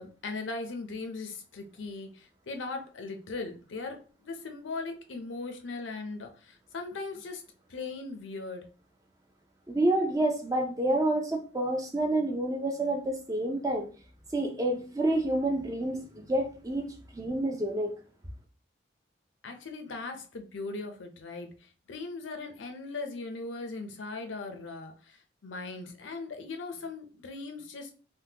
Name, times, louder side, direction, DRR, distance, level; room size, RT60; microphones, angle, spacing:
voice 1, 0.0-7.4 7.7-8.7 19.4-27.9, left 3 dB, 85° left, 0.6 m, -39 dB
voice 2, 9.7-13.9 14.3-17.9, right 1 dB, 20° right, 0.4 m, -28 dB
3.5 x 2.1 x 2.8 m
head